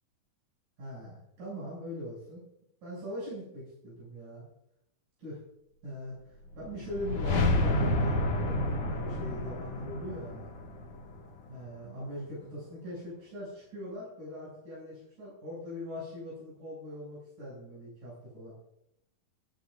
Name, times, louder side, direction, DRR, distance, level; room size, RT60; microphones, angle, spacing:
voice 1, 0.8-2.4 2.8-4.4 5.2-5.4 5.8-10.5 11.5-18.5, equal, 90° right, -7 dB, 9.1 m, -41 dB
sound 1, 6.5-11.7, left 1 dB, 65° left, 3.3 m, -30 dB
19.0 x 18.5 x 2.6 m, 0.81 s
omnidirectional pair, 3.5 m